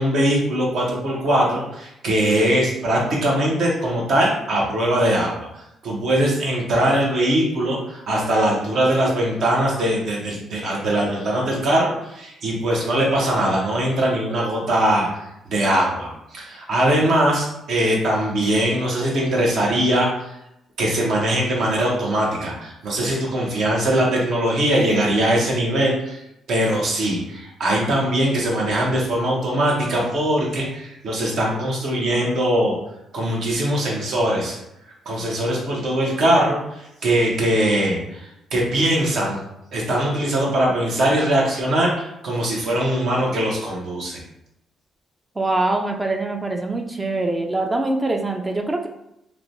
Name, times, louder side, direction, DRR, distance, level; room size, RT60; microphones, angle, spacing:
voice 1, 0.0-20.4 20.8-32.8 33.1-34.6 35.1-39.4 39.7-44.2, right 1 dB, 65° right, -2 dB, 0.8 m, -21 dB
voice 2, 45.4-48.9, right 2 dB, 20° right, 3 dB, 0.3 m, -23 dB
3.0 x 2.1 x 2.6 m, 0.84 s
cardioid pair, 90°, 0 cm